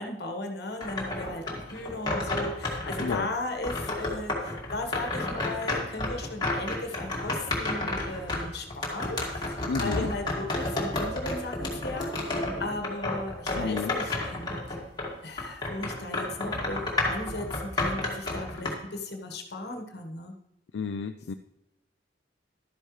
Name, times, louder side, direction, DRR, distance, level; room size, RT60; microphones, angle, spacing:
voice 1, 0.0-14.6 15.2-20.3, left 2 dB, 65° left, 5 dB, 1.4 m, -36 dB
sound 1, 0.8-3.2 3.6-15.1 15.4-18.7, left 2 dB, 25° left, 2.2 m, -31 dB
voice 2, 9.7-10.1 13.5-13.9 20.7-21.3, left 5 dB, 85° left, 7 dB, 0.4 m, -31 dB
12.0 x 10.0 x 3.2 m, 0.88 s
head